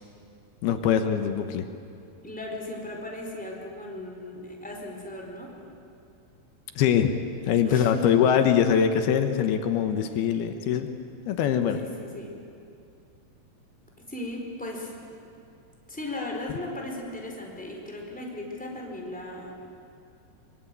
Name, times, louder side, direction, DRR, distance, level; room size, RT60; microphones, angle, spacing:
voice 1, 0.6-1.7 6.8-7.1 7.5-10.9 11.3-11.8, left 8 dB, 80° left, 7 dB, 3.1 m, -23 dB
voice 2, 2.2-5.6 7.6-8.3 11.7-12.4 14.1-14.9 15.9-19.5, left 1 dB, ahead, 0 dB, 3.8 m, -37 dB
24.0 x 24.0 x 9.2 m, 2.6 s
omnidirectional pair, 4.5 m